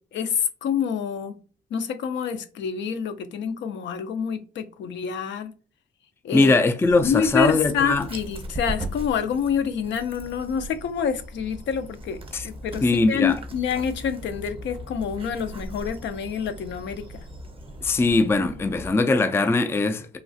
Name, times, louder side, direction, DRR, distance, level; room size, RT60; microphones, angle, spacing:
voice 1, 0.1-1.4 1.7-5.5 6.2-6.5 7.0-17.2, left 7 dB, 70° left, 0.5 m, -27 dB
voice 2, 6.3-8.0 12.3-12.5 12.8-13.4 17.8-20.2, left 3 dB, 10° left, 0.3 m, -21 dB
Dog, 6.8-18.9, right 1 dB, 25° right, 0.7 m, -39 dB
3.1 x 2.3 x 2.6 m
cardioid pair, 90°, 20 cm